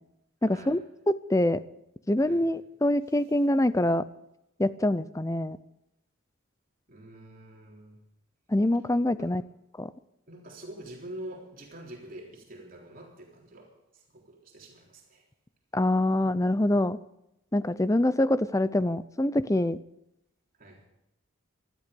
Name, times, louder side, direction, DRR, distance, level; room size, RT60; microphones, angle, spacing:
voice 1, 0.4-0.8 1.1-1.6 2.1-4.0 4.6-5.6 8.5-9.4 9.8-9.9 15.7-17.0 17.5-19.8, left 1 dB, 15° left, 15 dB, 0.5 m, -25 dB
voice 2, 6.9-8.0 9.2-9.3 10.3-15.2 20.6-20.8, right 1 dB, 45° right, -1 dB, 3.8 m, -46 dB
19.0 x 13.5 x 5.3 m, 0.85 s
head